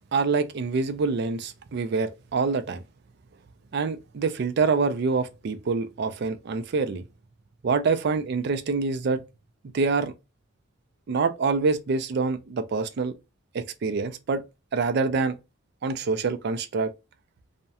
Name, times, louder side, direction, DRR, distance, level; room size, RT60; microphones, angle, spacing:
voice 1, 0.1-2.8 3.7-7.0 7.6-9.2 9.7-10.1 11.1-13.1 13.5-14.4 14.7-15.3 15.8-16.9, right 4 dB, 55° right, 0.4 m, -26 dB
2.3 x 2.1 x 2.7 m
head